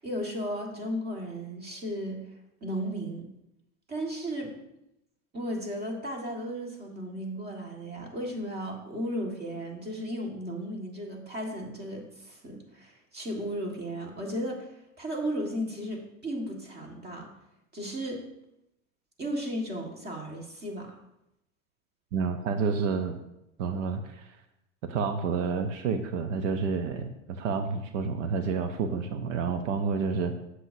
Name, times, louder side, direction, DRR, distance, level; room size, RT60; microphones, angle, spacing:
voice 1, 0.0-2.2 2.6-3.3 3.9-4.5 5.3-14.7 15.0-17.3 17.7-18.2 19.2-21.0, equal, 25° right, 1 dB, 1.8 m, -35 dB
voice 2, 22.1-23.2 23.6-24.4 24.8-30.3, right 5 dB, 75° right, 7 dB, 0.8 m, -29 dB
7.8 x 7.6 x 2.7 m, 0.87 s
supercardioid pair, 115°, 38 cm